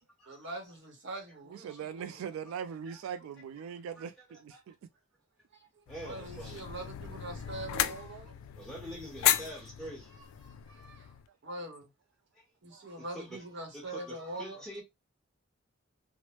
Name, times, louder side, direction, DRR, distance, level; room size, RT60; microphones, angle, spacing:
voice 1, 0.3-2.2 5.5-8.4 10.2-11.1 11.4-11.9 12.6-14.6, right 2 dB, 55° right, 0.9 m, -43 dB
voice 2, 1.5-4.8 11.5-11.6 12.7-12.9, right 7 dB, 85° right, 0.3 m, -41 dB
voice 3, 4.3-4.6 5.9-6.6 8.6-10.1 13.0-13.4 13.7-14.8, equal, 5° left, 1.1 m, -45 dB
sound 1, 5.9-11.3, left 12 dB, 85° left, 0.3 m, -34 dB
3.0 x 2.0 x 2.9 m
head